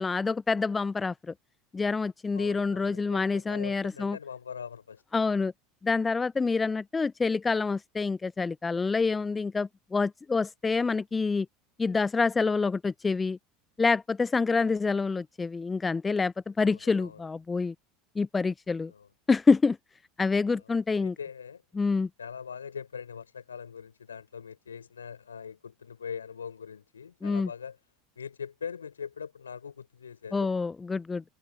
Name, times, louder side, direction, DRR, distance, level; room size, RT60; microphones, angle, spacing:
voice 1, 0.0-1.3 1.7-4.2 5.1-5.5 5.8-11.5 11.8-13.4 13.8-17.7 18.2-18.9 19.3-19.8 20.2-21.1 21.7-22.1 27.2-27.5 30.3-31.2, left 4 dB, 20° left, 0.5 m, -27 dB
voice 2, 2.3-5.0 14.6-14.7 16.6-17.2 18.9-19.1 20.5-21.6 22.2-27.8 28.1-30.5, left 7 dB, 85° left, 6.4 m, -42 dB
hypercardioid pair, 80°, 0 cm